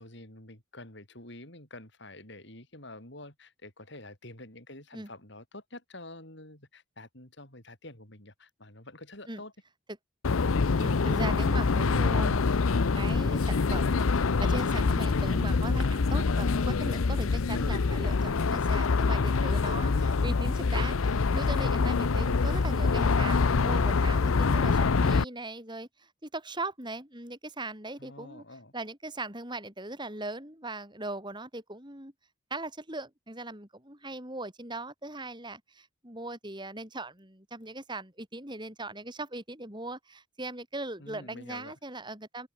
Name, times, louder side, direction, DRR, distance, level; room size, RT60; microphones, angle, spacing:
voice 1, 0.0-9.5 28.0-28.7 41.0-41.7, left 2 dB, 55° left, 6.9 m, -48 dB
sound 1, 10.2-25.2, left 4 dB, 85° left, 0.7 m, -25 dB
voice 2, 10.8-12.4 12.9-28.4 28.7-32.1 32.5-42.5, right 2 dB, 20° right, 6.0 m, -39 dB
open air
head